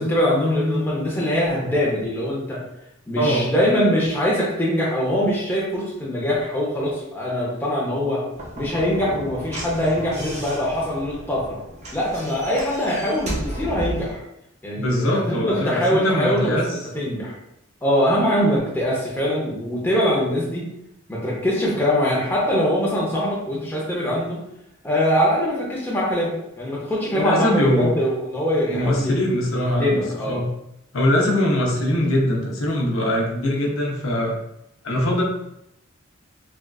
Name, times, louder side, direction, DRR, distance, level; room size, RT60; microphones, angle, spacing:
voice 1, 0.0-2.6 3.1-8.3 8.6-11.6 11.9-14.2 14.6-17.3 17.8-20.6 21.1-24.4 24.8-29.2 29.5-30.4, equal, 10° left, -6 dB, 0.7 m, -22 dB
voice 2, 3.2-3.5 14.8-16.8 27.1-27.9 28.7-30.5 30.9-34.3 34.8-35.2, left 1 dB, 80° left, -1 dB, 0.7 m, -22 dB
Slam / Knock, 8.3-14.2, right 1 dB, 35° right, 0.6 m, -33 dB
3.4 x 2.4 x 2.3 m, 0.81 s
head